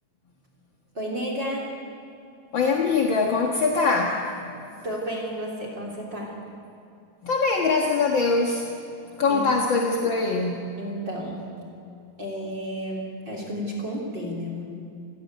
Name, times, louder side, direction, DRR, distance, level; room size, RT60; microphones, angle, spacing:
voice 1, 0.9-1.7 4.8-6.4 9.3-9.5 10.8-11.5 12.2-14.6, equal, 35° right, -1 dB, 3.7 m, -32 dB
voice 2, 2.5-4.3 7.2-8.7 9.2-10.6, left 4 dB, 45° left, 0 dB, 1.7 m, -22 dB
27.5 x 15.0 x 9.3 m, 2.7 s
omnidirectional pair, 3.9 m